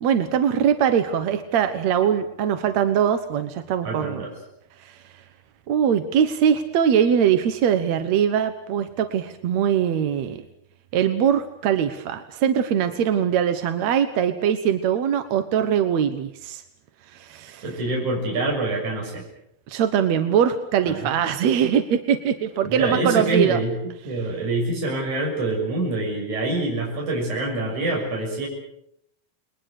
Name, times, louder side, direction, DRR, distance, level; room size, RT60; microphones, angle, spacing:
voice 1, 0.0-4.2 4.9-5.0 5.7-10.5 10.9-16.6 17.1-17.6 19.7-23.6, right 8 dB, 65° right, 9 dB, 1.8 m, -22 dB
voice 2, 3.8-4.3 17.6-19.2 20.8-21.1 22.6-28.5, right 2 dB, 50° right, -1 dB, 7.7 m, -26 dB
30.0 x 21.5 x 6.6 m, 0.72 s
omnidirectional pair, 4.5 m